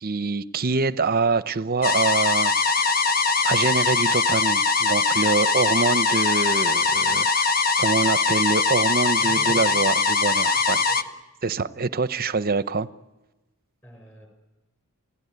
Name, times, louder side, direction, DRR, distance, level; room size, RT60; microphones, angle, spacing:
voice 1, 0.0-2.9 3.4-7.5 7.8-10.8 11.4-12.9, right 4 dB, 40° right, 0.7 m, -25 dB
sound 1, 1.8-11.0, left 4 dB, 40° left, 1.1 m, -21 dB
voice 2, 9.2-9.7 10.5-11.1 13.8-14.3, equal, 10° left, 6.6 m, -43 dB
30.0 x 16.5 x 9.6 m
head